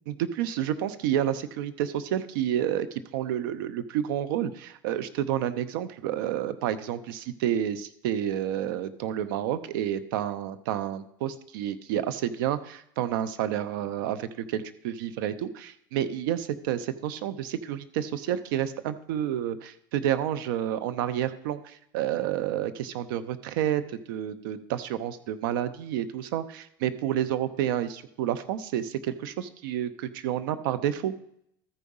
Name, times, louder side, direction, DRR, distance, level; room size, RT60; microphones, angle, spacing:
voice 1, 0.1-31.1, right 11 dB, 80° right, 13 dB, 0.8 m, -30 dB
13.5 x 4.8 x 5.5 m, 0.72 s
supercardioid pair, 105°, 11 cm